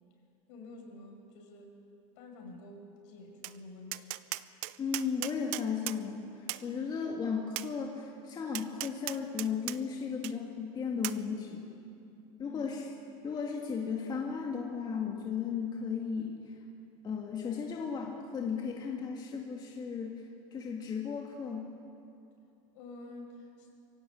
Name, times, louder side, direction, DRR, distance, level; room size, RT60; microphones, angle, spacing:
voice 1, 0.5-1.7 2.2-4.1 12.4-12.7 22.7-23.7, left 2 dB, 70° left, 2 dB, 6.3 m, -49 dB
Tap, 3.4-3.6 3.9-6.0 6.5-6.6 7.6-7.7 8.5-9.8 10.2-10.3 11.0-11.2, right 19 dB, 60° right, 0.7 m, -37 dB
voice 2, 4.8-6.2 6.6-11.7 12.4-12.9 13.2-16.5 17.0-20.2 20.5-21.7, left 6 dB, 25° left, 0 dB, 2.1 m, -35 dB
24.5 x 16.0 x 8.7 m, 2.6 s
supercardioid pair, 145°, 16 cm